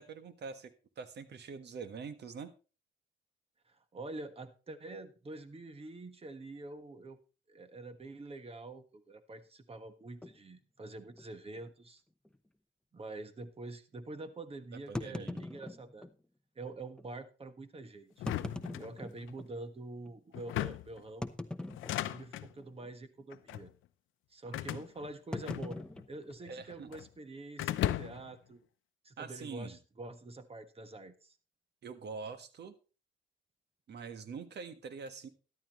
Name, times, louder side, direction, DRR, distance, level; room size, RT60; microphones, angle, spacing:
voice 1, 0.0-2.5 14.7-15.4 24.5-24.6 26.4-26.9 29.2-29.8 31.8-32.7 33.9-35.3, right 5 dB, 60° right, 11 dB, 1.5 m, -45 dB
voice 2, 3.7-7.2 7.5-12.0 12.9-16.1 16.5-18.2 18.8-21.3 22.1-23.7 24.3-25.8 26.1-28.6 29.0-31.4, right 2 dB, 30° right, 10 dB, 1.5 m, -46 dB
sound 1, 10.2-10.4 11.1-11.3 11.6-11.7 12.3-12.4 14.9-16.2 17.0-17.1 18.1-19.5 20.1-20.2 21.2-22.3 22.6-22.9 23.2-23.5 25.3-26.9, left 1 dB, 5° left, 0.9 m, -42 dB
sound 2, 18.2-19.3 20.3-21.0 21.7-22.5 23.3-23.7 24.5-26.0 26.3-27.1 27.6-28.3, left 14 dB, 80° left, 0.7 m, -37 dB
13.0 x 11.5 x 3.1 m, 0.34 s
cardioid pair, 90°, 20 cm